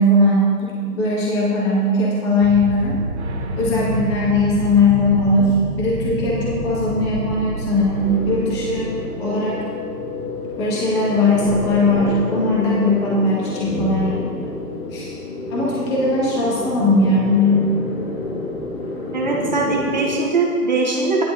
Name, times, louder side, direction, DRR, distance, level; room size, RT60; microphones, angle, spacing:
voice 1, 0.0-3.0 3.6-8.9 9.2-9.6 10.6-14.2 14.9-15.1 15.5-17.7, left 2 dB, 15° left, -6 dB, 1.6 m, -19 dB
sound 1, 2.4-10.1, right 1 dB, 45° right, 1.3 m, -28 dB
sound 2, 7.9-20.2, left 2 dB, 40° left, 1.6 m, -28 dB
voice 2, 19.1-21.2, right 3 dB, 30° right, -2 dB, 1.0 m, -21 dB
13.5 x 10.5 x 2.7 m, 2.3 s
hypercardioid pair, 155°, 47 cm